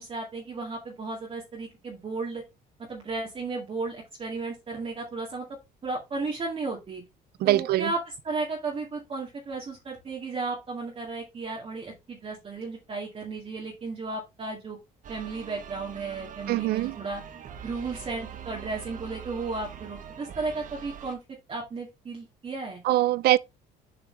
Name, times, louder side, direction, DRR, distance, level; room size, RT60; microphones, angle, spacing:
voice 1, 0.0-2.4 2.9-5.5 5.8-7.0 7.4-8.0 8.2-14.8 15.1-17.2 17.6-21.2 21.5-22.8, right 3 dB, 35° right, 2.1 m, -34 dB
voice 2, 7.4-7.9 16.5-17.0 22.8-23.4, right 15 dB, 70° right, 0.5 m, -23 dB
sound 1, 15.0-21.1, right 8 dB, 50° right, 1.1 m, -43 dB
7.2 x 4.9 x 3.4 m
cardioid pair, 110°, 17 cm